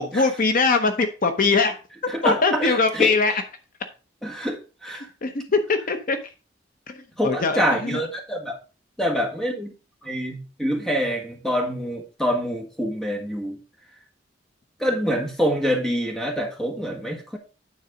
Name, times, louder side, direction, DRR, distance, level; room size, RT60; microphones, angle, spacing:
voice 1, 0.0-1.8 2.2-3.4 5.2-6.2 6.9-8.0, left 4 dB, 50° left, 7 dB, 0.8 m, -22 dB
voice 2, 2.1-3.1 4.2-5.1 7.2-8.6 9.0-9.7 10.0-13.6 14.8-17.4, equal, 5° left, 2 dB, 1.7 m, -26 dB
9.4 x 4.1 x 5.0 m, 0.34 s
head